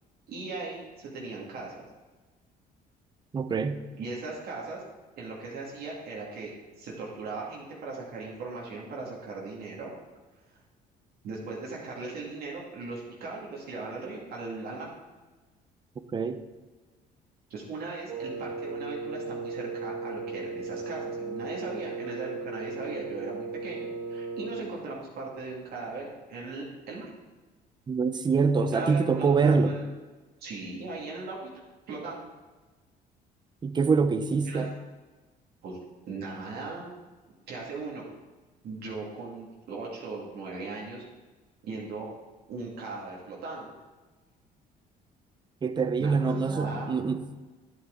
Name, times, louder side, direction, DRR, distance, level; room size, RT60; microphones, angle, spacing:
voice 1, 0.3-1.8 4.0-4.8 5.2-9.9 11.2-14.9 17.5-27.1 28.6-29.9 30.4-31.5 31.9-32.3 34.4-34.6 35.6-35.8 36.1-36.9 37.5-38.1 38.6-41.0 41.6-42.1 42.5-43.7 46.0-46.9, right 3 dB, 65° right, 2.3 m, -38 dB
voice 2, 3.3-3.8 16.1-16.4 27.9-29.7 33.6-34.7 45.6-47.2, right 5 dB, 25° right, 0.7 m, -25 dB
Wind instrument woodwind instrument, 18.1-24.8, right 4 dB, 80° right, 1.4 m, -36 dB
10.0 x 8.5 x 3.9 m
cardioid pair, 110°, 17 cm